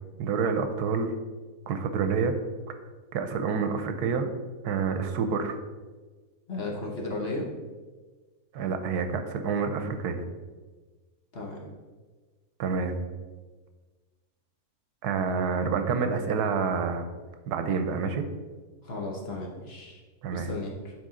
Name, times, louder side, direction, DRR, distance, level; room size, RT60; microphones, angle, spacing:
voice 1, 0.2-1.1 1.7-2.3 3.1-4.3 4.6-5.6 8.5-10.3 12.6-13.0 15.0-17.0 17.5-18.3 20.2-20.5, right 5 dB, 85° right, 7 dB, 1.2 m, -28 dB
voice 2, 6.5-7.5 11.3-11.7 18.8-20.0 20.3-20.9, left 2 dB, 45° left, -1 dB, 1.2 m, -35 dB
9.2 x 4.2 x 3.7 m, 1.3 s
omnidirectional pair, 1.7 m